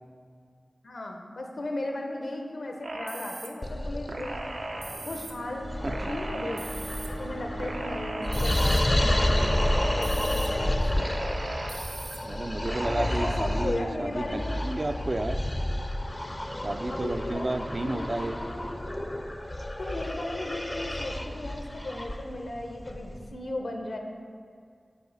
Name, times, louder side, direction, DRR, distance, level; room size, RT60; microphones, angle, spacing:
voice 1, 0.8-4.5 5.0-6.7 7.2-11.1 12.9-14.6 16.9-19.1 19.8-24.0, left 1 dB, 70° left, 3 dB, 0.8 m, -36 dB
sound 1, 2.8-3.5 4.1-5.3 5.8-7.1 7.6-8.8 9.3-10.5 11.0-12.2 12.6-13.3, right 2 dB, 85° right, 0.7 m, -37 dB
sound 2, 3.6-23.3, left 1 dB, 25° left, 0.5 m, -30 dB
Bowed string instrument, 4.7-11.4, right 1 dB, 70° right, 1.1 m, -42 dB
voice 2, 12.2-15.4 16.6-18.3, right 2 dB, 40° right, 8 dB, 0.3 m, -32 dB
9.2 x 5.0 x 4.0 m, 2.2 s
wide cardioid pair, 90°, 0 cm